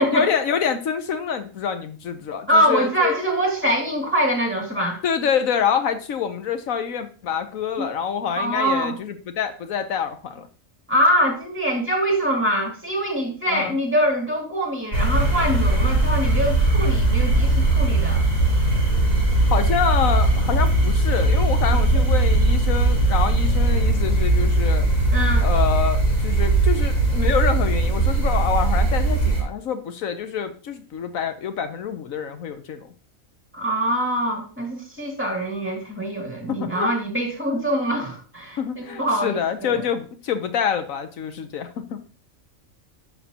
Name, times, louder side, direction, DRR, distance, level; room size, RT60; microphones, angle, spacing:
voice 1, 0.0-3.2 5.0-10.5 13.5-13.8 19.5-24.9 25.4-32.9 36.5-36.9 38.6-42.0, left 7 dB, 80° left, 9 dB, 1.2 m, -26 dB
voice 2, 2.5-5.0 7.8-7.9 8.4-9.0 10.9-18.2 21.7-22.1 25.1-25.5 33.5-39.8, equal, 10° right, 0 dB, 2.5 m, -24 dB
sound 1, 14.9-29.4, right 2 dB, 45° left, 5.6 m, -19 dB
11.0 x 6.5 x 2.9 m, 0.38 s
omnidirectional pair, 1.4 m